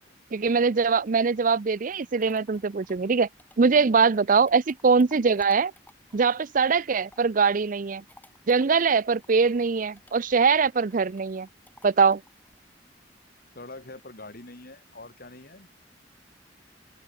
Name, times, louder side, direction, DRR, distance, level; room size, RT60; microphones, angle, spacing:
voice 1, 0.3-3.3 3.6-5.7 6.1-8.0 8.5-11.5 11.8-12.2, right 5 dB, 50° right, 0.5 m, -22 dB
sound 1, 1.7-7.4 7.7-14.0, left 2 dB, 10° left, 3.5 m, -58 dB
voice 2, 3.6-4.1 13.6-15.7, left 2 dB, 55° left, 3.4 m, -44 dB
open air
head